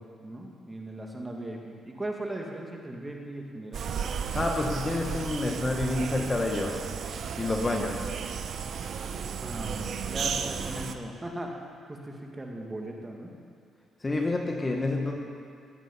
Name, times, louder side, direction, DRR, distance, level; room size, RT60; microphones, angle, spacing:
voice 1, 0.0-3.9 9.4-11.5 11.9-13.3, right 1 dB, 20° right, 0 dB, 2.1 m, -38 dB
sound 1, 3.7-11.0, right 7 dB, 60° right, 0.8 m, -34 dB
voice 2, 4.3-6.9 7.4-8.1 14.0-15.2, left 2 dB, 25° left, 2 dB, 1.3 m, -28 dB
17.0 x 8.9 x 5.5 m, 2.3 s
cardioid pair, 90°, 0 cm